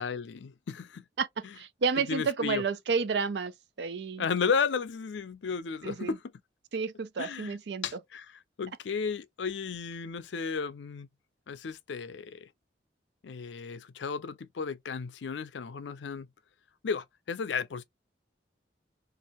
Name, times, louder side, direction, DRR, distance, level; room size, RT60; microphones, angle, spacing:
voice 1, 0.0-1.0 1.4-1.5 2.1-2.6 4.2-6.2 7.2-7.6 7.8-11.1 11.5-12.5 13.2-16.3 16.8-17.8, left 5 dB, 90° left, 0.5 m, -34 dB
voice 2, 1.2-3.5 3.8-4.3 5.8-6.2 6.7-7.8, right 5 dB, 70° right, 0.5 m, -31 dB
2.7 x 2.5 x 2.9 m
head